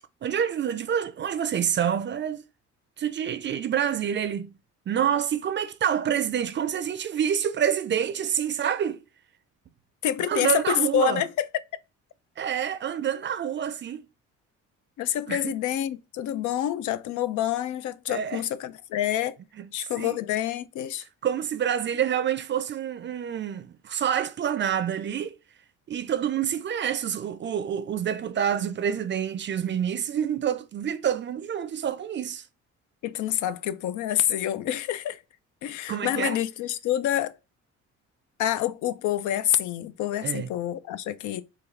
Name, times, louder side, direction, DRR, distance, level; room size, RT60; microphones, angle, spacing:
voice 1, 0.2-2.4 3.0-4.6 4.9-9.0 10.2-11.2 12.4-14.0 15.3-15.5 18.1-18.4 19.6-19.7 20.0-20.2 21.2-25.4 25.9-32.4 35.9-36.4 40.2-40.5, right 9 dB, 40° right, 0.4 m, -27 dB
voice 2, 10.0-11.5 15.0-19.4 19.7-21.0 33.0-35.2 35.6-37.3 38.4-41.4, left 11 dB, 75° left, 0.5 m, -27 dB
3.7 x 2.4 x 3.2 m
cardioid pair, 100°, 30 cm